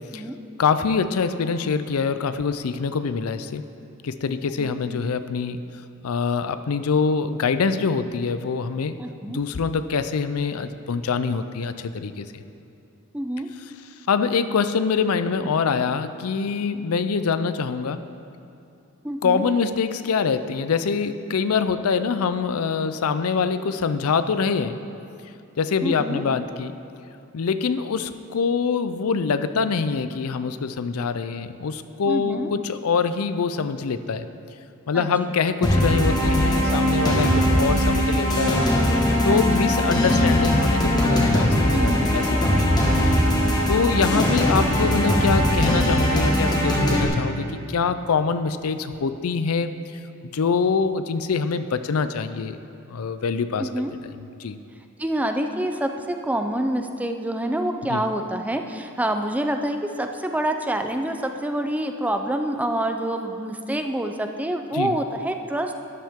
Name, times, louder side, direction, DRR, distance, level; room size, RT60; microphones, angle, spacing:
voice 1, 0.6-3.6 4.0-5.6 6.0-9.0 9.3-12.4 14.1-18.0 19.2-24.8 25.6-26.8 27.3-34.3 34.9-39.0 39.2-42.9 43.2-43.4 43.7-50.0 50.3-52.6 52.9-53.8 54.4-54.6 57.9-58.0 64.7-65.0, left 5 dB, 90° left, 11 dB, 0.5 m, -24 dB
voice 2, 9.0-9.4 13.1-13.5 19.0-19.4 25.8-26.2 32.1-32.5 34.9-35.3 39.3-39.5 41.7-42.1 44.1-44.6 53.6-53.9 55.0-65.7, right 1 dB, 5° right, 5 dB, 0.5 m, -27 dB
sound 1, 35.6-47.0, equal, 20° left, 1.5 m, -20 dB
13.0 x 10.5 x 3.6 m, 2.7 s
head